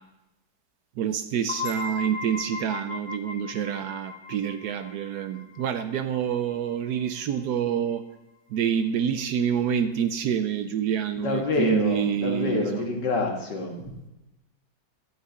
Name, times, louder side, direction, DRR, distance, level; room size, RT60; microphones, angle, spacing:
voice 1, 1.0-8.0 8.5-12.9, right 8 dB, 75° right, 9 dB, 1.0 m, -27 dB
sound 1, 1.5-6.9, left 4 dB, 30° left, 3.1 m, -37 dB
voice 2, 11.2-13.9, left 3 dB, 70° left, 1 dB, 2.1 m, -27 dB
11.0 x 4.8 x 7.8 m, 0.97 s
omnidirectional pair, 2.0 m